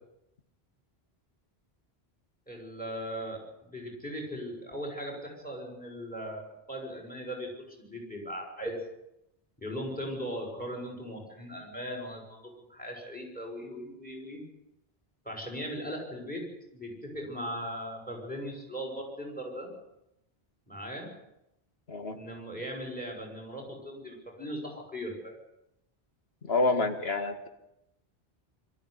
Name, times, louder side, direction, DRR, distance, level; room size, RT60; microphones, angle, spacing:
voice 1, 2.5-8.8 9.6-14.4 15.2-16.4 16.7-19.7 20.7-21.1 22.1-25.4, equal, 10° left, 2 dB, 6.3 m, -38 dB
voice 2, 26.5-27.5, left 3 dB, 80° left, 6 dB, 2.2 m, -28 dB
22.0 x 14.0 x 9.9 m, 0.86 s
omnidirectional pair, 1.0 m